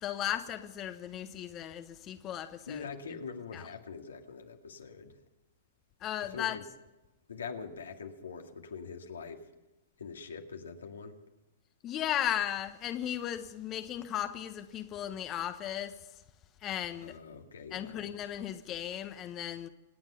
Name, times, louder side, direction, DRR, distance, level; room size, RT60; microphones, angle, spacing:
voice 1, 0.0-2.8 6.0-6.5 11.8-15.9 16.6-17.1 17.7-19.7, left 11 dB, 30° left, 9 dB, 1.2 m, -36 dB
voice 2, 2.7-5.2 6.2-6.7 7.3-9.5 10.0-11.2 17.0-18.2, left 5 dB, 80° left, 4 dB, 2.1 m, -43 dB
26.5 x 9.6 x 5.6 m, 1.0 s
hypercardioid pair, 110°, 0 cm